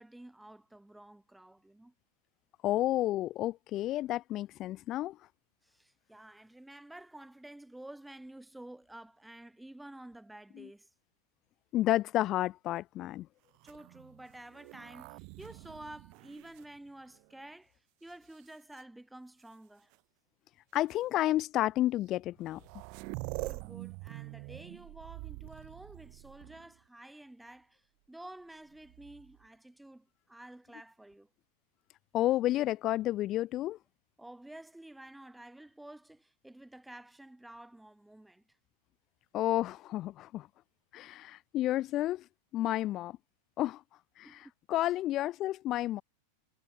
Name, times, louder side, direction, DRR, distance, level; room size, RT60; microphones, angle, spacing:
voice 1, 0.0-1.9 5.6-10.9 13.6-19.9 23.4-31.3 34.2-38.4 44.2-44.5, right 1 dB, 5° right, 2.4 m, -51 dB
voice 2, 2.6-5.2 10.6-10.7 11.7-13.3 20.7-22.6 32.1-33.8 39.3-40.5 40.9-42.2 42.5-43.2 43.6-43.8 44.2-44.3 44.7-46.0, left 14 dB, 30° left, 0.5 m, -31 dB
sound 1, 13.6-17.4 18.1-18.8 19.9-20.0 20.7-20.9 22.1-22.2 22.3-26.8 28.7-29.4, right 34 dB, 45° right, 1.7 m, -46 dB
supercardioid pair, 150°, 0 cm